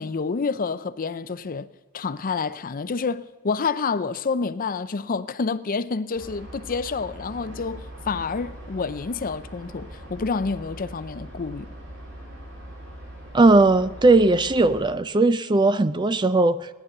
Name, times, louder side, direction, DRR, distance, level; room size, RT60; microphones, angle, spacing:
voice 1, 0.0-1.7 1.9-11.7, left 4 dB, 40° left, 0.5 m, -28 dB
sound 1, 6.2-14.9, right 1 dB, 65° right, 3.6 m, -41 dB
voice 2, 13.3-16.7, right 2 dB, 20° right, 0.4 m, -18 dB
17.5 x 10.0 x 6.6 m
head